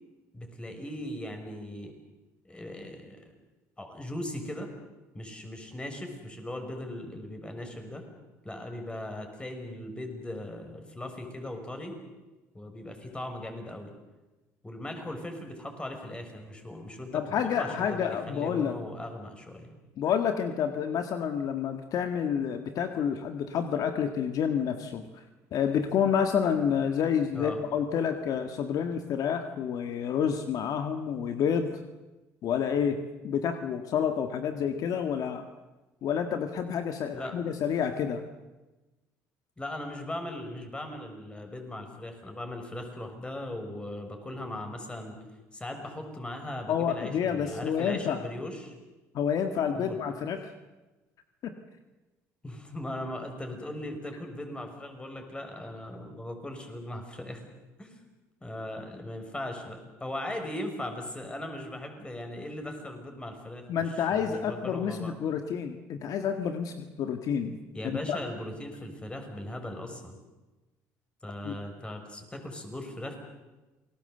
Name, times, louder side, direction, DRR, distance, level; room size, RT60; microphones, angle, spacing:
voice 1, 0.3-1.9 2.4-3.2 3.8-4.7 5.1-8.0 8.4-12.0 12.5-13.9 14.6-19.7 27.3-27.6 37.1-37.3 39.6-45.2 45.5-48.7 49.7-50.0 52.4-57.4 57.8-57.9 58.4-65.2 67.7-70.2 71.2-73.2, left 1 dB, 15° left, 5 dB, 6.0 m, -39 dB
voice 2, 17.1-18.7 20.0-25.0 25.5-31.8 32.4-35.4 36.0-38.2 46.7-48.2 49.1-50.5 51.4-51.5 63.7-67.6 67.8-68.2 71.4-71.5, left 7 dB, 65° left, 7 dB, 1.8 m, -29 dB
28.0 x 19.5 x 8.0 m, 1.1 s
supercardioid pair, 85°, 7 cm